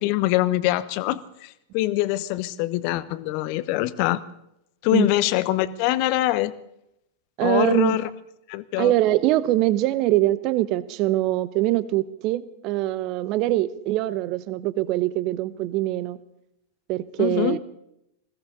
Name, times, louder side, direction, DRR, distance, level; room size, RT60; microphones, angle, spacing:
voice 1, 0.0-4.2 4.8-6.5 7.4-8.1 8.5-8.9 17.2-17.6, left 16 dB, 45° left, 17 dB, 0.9 m, -24 dB
voice 2, 7.4-8.0 8.8-16.2 16.9-17.6, right 15 dB, 40° right, 17 dB, 0.9 m, -23 dB
21.0 x 17.0 x 3.9 m, 0.82 s
figure-of-eight pair, 90°, 0 cm